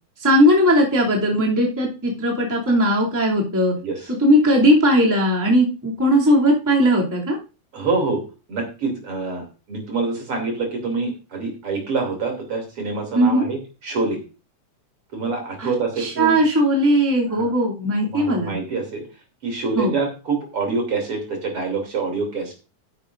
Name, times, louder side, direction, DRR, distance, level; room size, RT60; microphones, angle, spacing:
voice 1, 0.2-3.7 4.2-7.4 13.1-13.5 15.6-18.5 19.8-19.9, equal, 5° right, -3 dB, 2.3 m, -18 dB
voice 2, 7.7-8.2 8.5-14.2 15.1-16.4 17.3-17.5 18.1-19.0 19.4-22.5, right 3 dB, 50° right, 2 dB, 3.6 m, -26 dB
12.5 x 10.0 x 2.6 m, 0.32 s
omnidirectional pair, 3.4 m